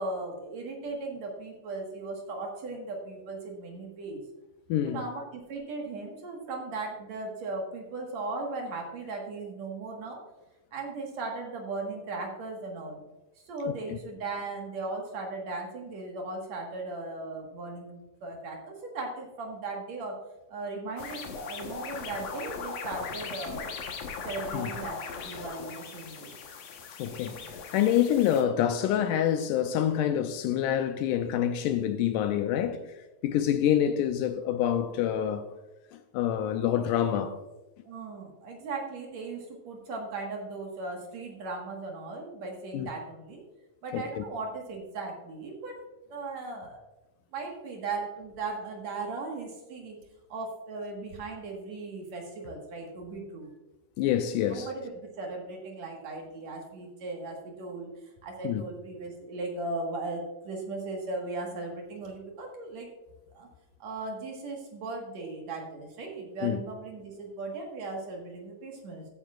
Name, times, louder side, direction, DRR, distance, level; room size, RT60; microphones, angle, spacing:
voice 1, 0.0-4.2 4.8-10.2 10.7-13.0 13.5-20.2 20.5-23.7 24.2-26.3 37.9-43.4 43.8-45.8 46.1-46.8 47.3-50.0 50.3-53.5 54.4-57.9 58.2-62.9 63.3-63.5 63.8-69.1, right 3 dB, 60° right, 2.5 m, -37 dB
voice 2, 4.7-5.0 13.7-14.0 24.5-24.7 25.2-25.5 27.0-32.9 33.2-35.5 35.9-37.4 42.7-42.9 43.9-44.2 54.0-54.7 58.4-58.6 66.4-66.6, left 10 dB, 80° left, 2.0 m, -27 dB
sound 1, 21.0-28.4, left 5 dB, 60° left, 2.0 m, -39 dB
14.5 x 9.1 x 2.4 m
omnidirectional pair, 3.9 m